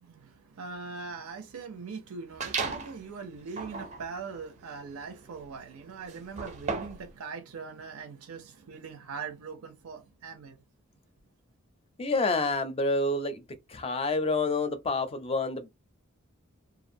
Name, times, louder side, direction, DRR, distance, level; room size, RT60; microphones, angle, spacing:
voice 1, 0.0-10.6, right 5 dB, 85° right, 0.5 m, -41 dB
sound 1, 2.4-3.0 3.5-7.1, right 5 dB, 35° right, 0.4 m, -36 dB
voice 2, 12.0-13.4 13.7-15.7, left 3 dB, 25° left, 0.4 m, -28 dB
2.5 x 2.1 x 2.6 m
head